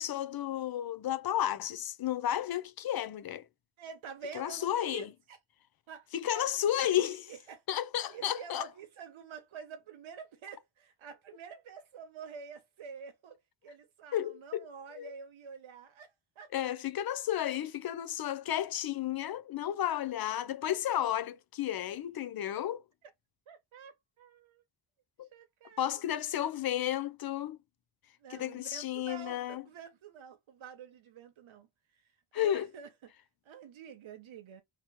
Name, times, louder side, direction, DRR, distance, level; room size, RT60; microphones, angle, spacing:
voice 1, 0.0-3.4 4.3-5.1 6.1-7.2 7.7-8.7 14.1-14.6 14.9-15.1 16.5-22.8 25.2-25.3 25.8-27.6 28.3-29.6 32.3-32.7, left 11 dB, 55° left, 0.5 m, -32 dB
voice 2, 3.8-5.4 5.9-7.6 8.1-13.4 13.6-16.7 23.5-24.6 25.3-25.9 28.2-31.7 32.0-32.1 32.3-33.1 33.4-34.6, right 6 dB, 85° right, 1.0 m, -48 dB
2.9 x 2.9 x 3.5 m
wide cardioid pair, 175°, 46 cm